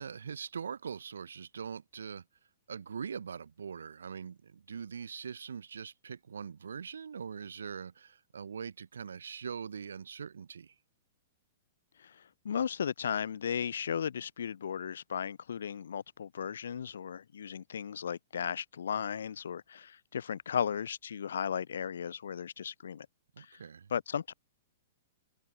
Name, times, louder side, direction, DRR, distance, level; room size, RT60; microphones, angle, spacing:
voice 1, 0.0-2.2 2.7-10.7 23.4-23.9, right 6 dB, 65° right, 0.7 m, -42 dB
voice 2, 12.0-23.1 23.4-23.6 23.9-24.3, left 8 dB, 60° left, 0.4 m, -36 dB
open air
figure-of-eight pair, 105°, 0 cm